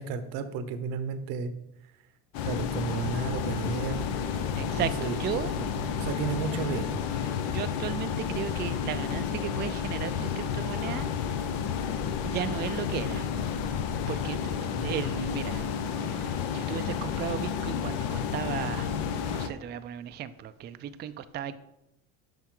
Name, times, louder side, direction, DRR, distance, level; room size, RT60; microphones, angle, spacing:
voice 1, 0.0-1.5 2.4-4.1 4.5-5.2 5.5-7.0 14.8-14.9, right 6 dB, 80° right, 11 dB, 0.8 m, -33 dB
sound 1, 2.3-19.5, left 7 dB, 80° left, 0.7 m, -31 dB
voice 2, 4.3-5.5 6.5-6.6 7.2-11.1 12.2-13.3 14.1-15.7 16.0-21.6, right 9 dB, 30° right, 11 dB, 0.4 m, -36 dB
7.4 x 5.5 x 3.8 m, 0.86 s
supercardioid pair, 100°, 34 cm